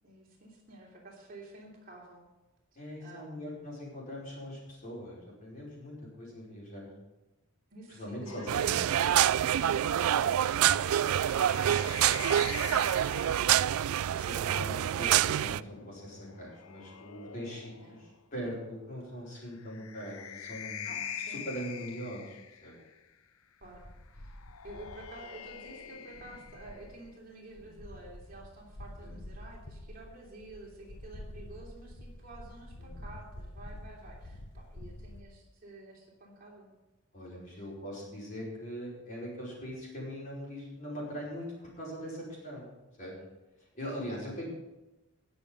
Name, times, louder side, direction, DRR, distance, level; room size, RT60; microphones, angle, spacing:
voice 1, 0.0-2.2 3.0-3.6 7.7-13.4 17.8-18.0 20.8-21.4 23.6-23.8 24.1-24.4 24.6-36.7 37.5-37.6 41.6-41.8, right 2 dB, 40° right, -2 dB, 3.0 m, -50 dB
voice 2, 2.8-6.9 7.9-8.8 14.1-22.8 27.6-27.7 29.0-29.1 32.8-32.9 37.1-43.1 43.7-44.5, equal, 35° left, -5 dB, 5.1 m, -41 dB
sound 1, 8.3-13.8 15.2-18.2 19.5-23.0 24.2-27.2, left 8 dB, 75° left, 0.7 m, -45 dB
sound 2, 8.5-15.6, right 11 dB, 75° right, 0.3 m, -26 dB
sound 3, 23.6-27.1 27.5-35.2, left 1 dB, 50° left, 1.0 m, -48 dB
19.5 x 7.0 x 5.3 m, 1.1 s
head